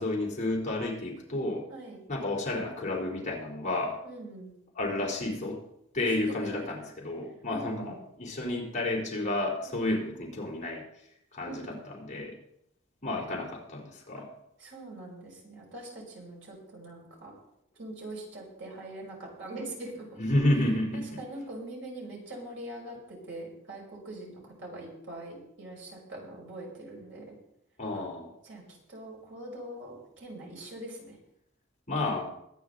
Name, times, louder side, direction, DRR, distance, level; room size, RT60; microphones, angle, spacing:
voice 1, 0.0-1.7 2.1-4.0 4.7-5.6 5.9-10.8 11.3-12.4 13.0-14.3 20.2-21.2 27.8-28.3 31.9-32.3, left 1 dB, 35° left, -2 dB, 3.7 m, -31 dB
voice 2, 4.0-4.5 6.0-6.5 7.5-8.0 9.7-9.9 11.4-11.8 14.2-14.3 14.6-17.3 17.8-20.2 20.9-27.4 27.9-28.1 28.4-28.6 28.9-31.2, right 1 dB, 65° right, -2 dB, 5.6 m, -43 dB
22.0 x 9.3 x 3.9 m, 0.77 s
head